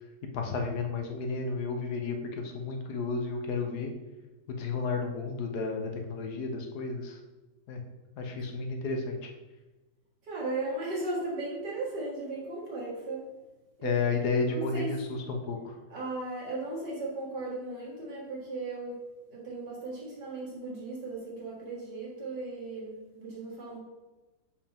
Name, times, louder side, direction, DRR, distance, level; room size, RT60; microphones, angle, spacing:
voice 1, 0.3-3.9 4.5-7.2 7.7-7.8 8.2-9.3 13.8-15.8, left 4 dB, 70° left, 3 dB, 1.4 m, -32 dB
voice 2, 10.2-13.2 13.8-13.9 14.5-15.0 15.9-19.0 19.3-23.8, right 2 dB, 75° right, -4 dB, 2.5 m, -36 dB
6.7 x 5.6 x 3.5 m, 1.1 s
omnidirectional pair, 1.8 m